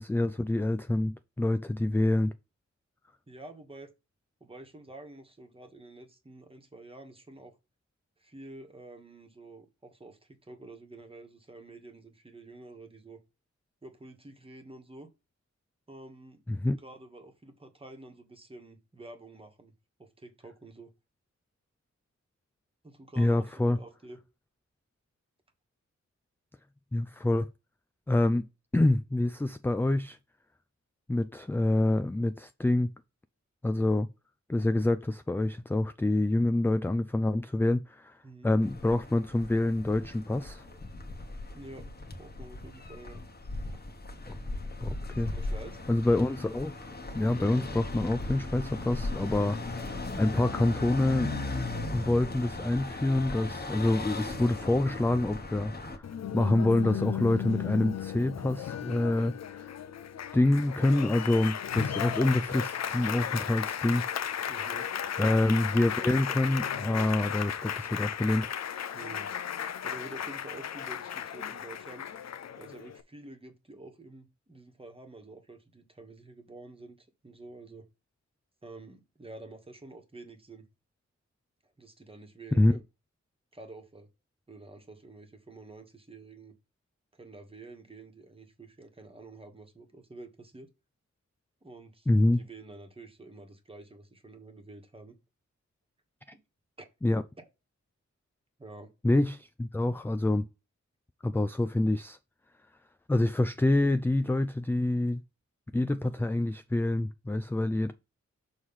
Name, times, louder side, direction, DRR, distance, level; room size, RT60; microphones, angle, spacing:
voice 1, 0.0-2.3 16.5-16.8 23.2-23.8 26.9-27.5 28.1-28.5 28.7-30.2 31.1-32.9 33.6-34.1 34.5-38.2 38.4-40.6 44.3-44.4 44.8-45.3 45.9-46.7 47.1-51.3 51.9-59.8 60.3-64.0 65.2-68.5 82.5-82.7 92.1-92.4 97.0-97.2 99.0-100.5 101.2-102.2 103.1-105.2 105.7-107.9, left 1 dB, 10° left, 0.3 m, -27 dB
voice 2, 3.3-3.9 4.4-7.6 8.2-13.2 13.8-15.1 15.9-16.4 16.7-19.7 20.0-20.9 22.8-24.2 38.2-38.5 41.5-41.9 42.2-43.2 45.1-45.8 64.5-64.9 68.9-72.0 72.6-77.9 78.6-80.7 81.6-82.8 83.5-84.1 84.5-86.5 87.1-90.7 91.6-95.2 96.8-96.9 98.6-98.9, right 2 dB, 20° right, 1.4 m, -49 dB
sound 1, 38.6-56.0, left 2 dB, 35° left, 1.2 m, -37 dB
Applause, 56.0-73.0, left 9 dB, 65° left, 0.6 m, -35 dB
6.4 x 3.2 x 5.5 m
wide cardioid pair, 150°, 29 cm